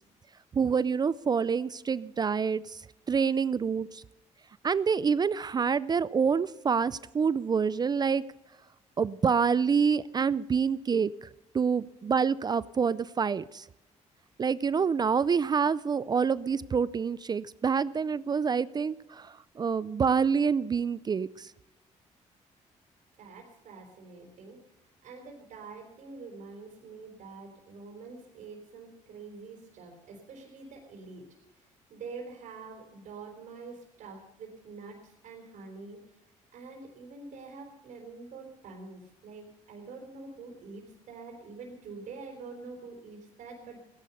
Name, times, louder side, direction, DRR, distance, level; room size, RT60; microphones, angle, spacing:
voice 1, 0.5-2.8 3.1-4.0 4.6-8.2 9.0-11.1 11.5-13.6 14.4-21.5, right 6 dB, 30° right, 18 dB, 0.4 m, -27 dB
voice 2, 23.2-24.6 25.0-31.2 31.5-36.2 36.5-43.8, right 4 dB, 75° right, 0 dB, 4.1 m, -46 dB
16.0 x 11.5 x 6.7 m, 0.95 s
cardioid pair, 105°, 13 cm